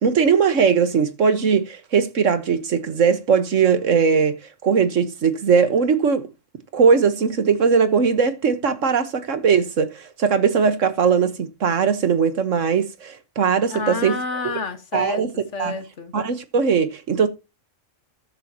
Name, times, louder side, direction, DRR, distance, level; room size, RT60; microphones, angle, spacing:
voice 1, 0.0-6.3 6.7-14.1 14.9-15.3 15.6-15.7 16.1-17.3, right 6 dB, 85° right, 1.6 m, -19 dB
voice 2, 13.7-15.2 15.5-16.1, left 4 dB, 70° left, 1.8 m, -29 dB
14.0 x 10.5 x 2.9 m
omnidirectional pair, 1.3 m